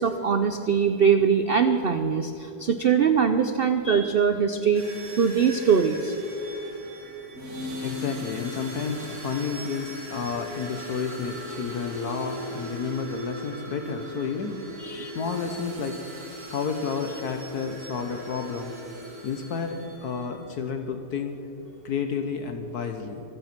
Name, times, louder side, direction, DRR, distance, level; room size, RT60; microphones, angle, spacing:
voice 1, 0.0-4.9 5.2-6.1 14.8-15.1, right 6 dB, 75° right, 8 dB, 0.5 m, -22 dB
sound 1, 4.7-20.4, equal, 55° right, 2.8 m, -38 dB
voice 2, 7.8-14.6 15.1-16.0 16.5-18.7 19.2-21.4 21.8-23.2, left 6 dB, 65° left, 6 dB, 1.5 m, -31 dB
25.0 x 8.9 x 6.0 m, 3.0 s
omnidirectional pair, 1.9 m